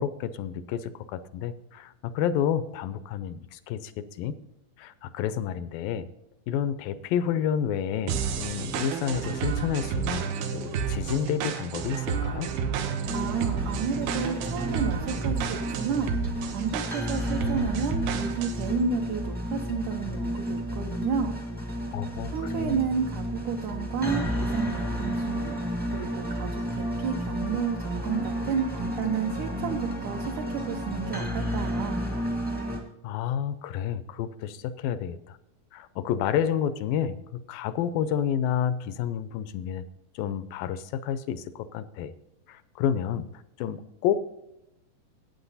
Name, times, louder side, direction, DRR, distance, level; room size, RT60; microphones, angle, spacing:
voice 1, 0.0-4.4 4.8-6.1 6.5-10.2 10.5-12.5 21.9-22.8 33.0-35.4 35.7-39.9 40.2-42.1 42.5-43.3 43.6-44.2, left 9 dB, 80° left, 13 dB, 2.2 m, -30 dB
sound 1, 8.1-18.7, right 6 dB, 90° right, 2.9 m, -31 dB
sound 2, 13.0-32.8, equal, 5° right, 0.6 m, -31 dB
voice 2, 13.1-21.4 22.3-32.0, right 6 dB, 75° right, 3 dB, 1.9 m, -32 dB
12.0 x 9.0 x 4.0 m, 0.87 s
omnidirectional pair, 4.2 m